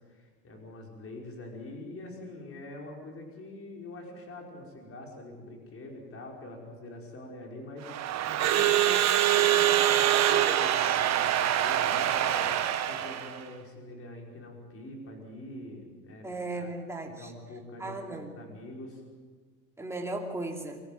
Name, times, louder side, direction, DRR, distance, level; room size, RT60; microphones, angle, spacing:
voice 1, 0.1-8.9 9.2-16.7 17.1-19.0, left 2 dB, 25° left, 1 dB, 5.4 m, -44 dB
Crowd / Alarm, 7.8-13.4, right 11 dB, 30° right, 1.5 m, -25 dB
voice 2, 8.6-8.9 16.2-17.3 17.8-18.4 19.8-20.8, right 2 dB, 5° right, 1 dB, 2.8 m, -36 dB
25.5 x 14.0 x 9.3 m, 1.5 s
supercardioid pair, 135°, 50 cm